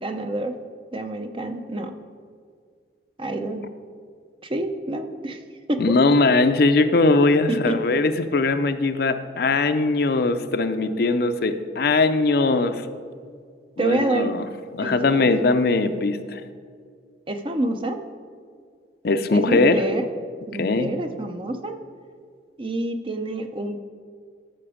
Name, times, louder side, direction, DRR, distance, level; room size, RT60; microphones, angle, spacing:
voice 1, 0.0-0.6 0.9-1.9 3.2-3.6 4.4-5.4 5.7-6.0 7.5-7.8 13.8-14.3 14.8-15.3 17.3-18.0 19.3-20.1 20.5-21.8 22.6-23.8, right 2 dB, 30° right, 7 dB, 0.6 m, -27 dB
voice 2, 5.8-12.9 13.8-14.5 14.7-16.4 19.0-19.8 20.6-20.9, left 3 dB, 55° left, 9 dB, 0.5 m, -20 dB
13.5 x 6.0 x 5.0 m, 2.1 s
head